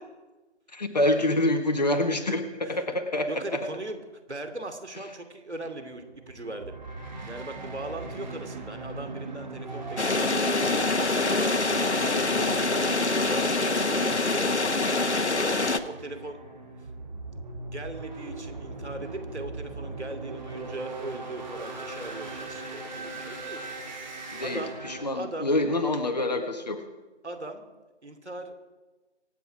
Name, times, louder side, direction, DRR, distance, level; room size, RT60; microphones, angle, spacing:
voice 1, 0.7-3.6 24.3-26.8, left 1 dB, 35° left, 6 dB, 1.5 m, -26 dB
voice 2, 2.2-2.8 3.3-4.0 4.3-6.8 7.3-10.7 11.3-14.6 15.3-16.4 17.7-23.7 24.4-24.7 25.1-25.5 27.2-27.6 28.0-28.6, right 2 dB, 70° right, 6 dB, 2.8 m, -39 dB
sound 1, 5.6-25.1, right 3 dB, 40° right, 3.3 m, -39 dB
sound 2, 10.0-15.8, left 3 dB, 70° left, 1.2 m, -25 dB
25.0 x 9.4 x 4.8 m, 1.2 s
figure-of-eight pair, 160°, 35 cm